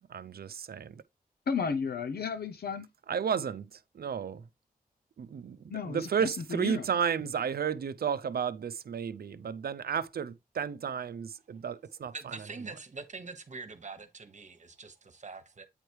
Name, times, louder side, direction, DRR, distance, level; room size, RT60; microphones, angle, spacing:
voice 1, 0.1-1.0 3.1-4.4 5.2-12.1, right 7 dB, 80° right, 0.6 m, -33 dB
voice 2, 1.5-2.9 5.7-6.9, left 6 dB, 85° left, 0.7 m, -33 dB
voice 3, 12.1-15.7, right 4 dB, 50° right, 1.2 m, -44 dB
8.9 x 3.3 x 4.6 m
wide cardioid pair, 90°, 16 cm